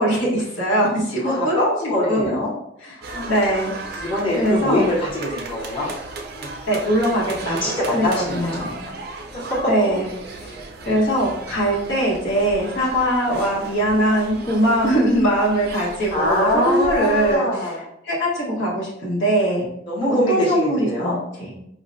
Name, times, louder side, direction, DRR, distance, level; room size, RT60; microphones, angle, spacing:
voice 1, 0.0-1.6 2.1-2.3 2.8-3.0 3.2-4.0 4.3-4.9 6.7-8.8 9.7-10.1 10.4-10.5 10.9-17.8 18.0-19.7 20.1-21.5, right 1 dB, 75° left, -5 dB, 1.3 m, -21 dB
voice 2, 1.2-2.5 3.1-3.4 4.0-5.9 6.3-6.5 7.5-8.7 9.3-9.7 10.9-11.0 16.1-17.8 19.9-21.2, left 1 dB, 30° left, -7 dB, 0.8 m, -23 dB
sound 1, 3.0-17.4, right 3 dB, 55° right, 0.5 m, -36 dB
5.0 x 2.1 x 2.6 m, 0.78 s
head